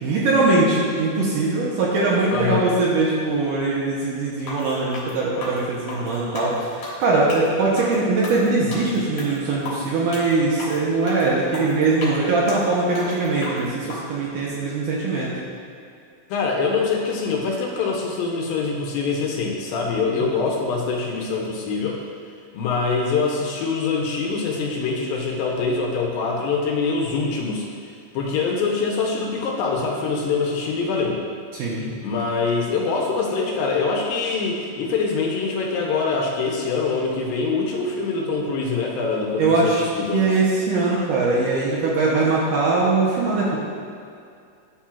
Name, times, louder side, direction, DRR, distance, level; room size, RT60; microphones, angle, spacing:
voice 1, 0.0-15.3 20.1-20.2 31.5-31.8 39.4-39.8 40.1-43.6, right 3 dB, 75° right, -5 dB, 2.1 m, -21 dB
voice 2, 2.3-2.7 16.3-22.0 22.5-27.7 28.1-31.2 31.8-40.3, left 4 dB, 80° left, -1 dB, 2.4 m, -24 dB
sound 1, 4.4-14.0, left 2 dB, 60° left, 2.1 m, -35 dB
11.0 x 4.3 x 2.4 m, 2.4 s
omnidirectional pair, 4.3 m